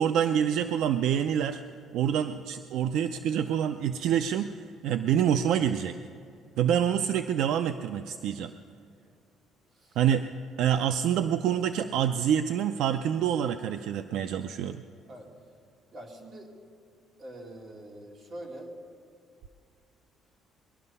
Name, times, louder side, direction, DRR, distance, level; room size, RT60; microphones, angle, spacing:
voice 1, 0.0-1.6 1.9-4.6 4.8-6.0 6.6-8.5 10.0-10.2 10.6-14.8, right 9 dB, 65° right, 9 dB, 0.5 m, -26 dB
voice 2, 15.9-16.5 17.2-18.7, right 1 dB, 35° right, 0 dB, 2.3 m, -45 dB
20.5 x 12.0 x 5.5 m, 2.4 s
cardioid pair, 160°, 0 cm